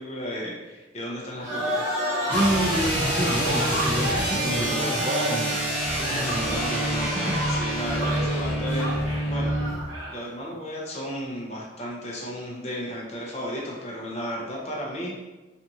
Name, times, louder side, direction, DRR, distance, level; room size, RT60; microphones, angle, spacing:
voice 1, 0.0-1.9 4.1-5.1 6.1-9.6 10.1-15.1, equal, 35° left, -4 dB, 0.6 m, -34 dB
sound 1, 1.4-10.2, equal, 70° right, 0.9 m, -30 dB
sound 2, 2.3-9.8, right 1 dB, 5° left, 1.1 m, -27 dB
voice 2, 2.3-5.6 6.0-6.8 7.3-7.4, right 1 dB, 25° right, -2 dB, 0.4 m, -28 dB
2.7 x 2.4 x 2.7 m, 1.1 s
head